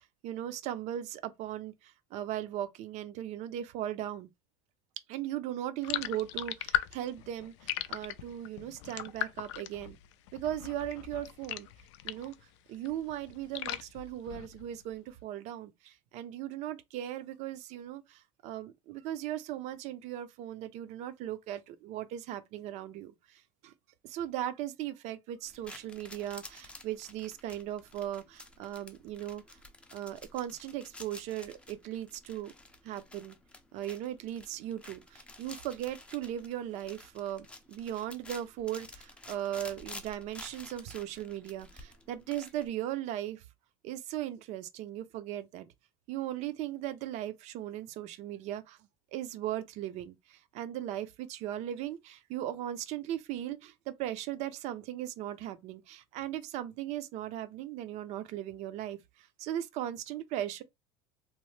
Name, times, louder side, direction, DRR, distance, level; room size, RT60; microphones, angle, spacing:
voice 1, 0.2-4.3 5.1-10.0 10.3-11.7 12.0-12.3 12.7-23.7 24.0-29.4 29.9-32.5 32.8-33.4 33.7-43.4 43.8-45.7 46.1-48.8 49.1-60.6, right 12 dB, 50° right, 0.5 m, -38 dB
sound 1, 5.8-12.4 12.7-14.8, left 13 dB, 90° left, 0.4 m, -38 dB
sound 2, 25.4-42.7, left 2 dB, 5° left, 0.4 m, -51 dB
3.0 x 2.1 x 3.1 m
supercardioid pair, 135°, 15 cm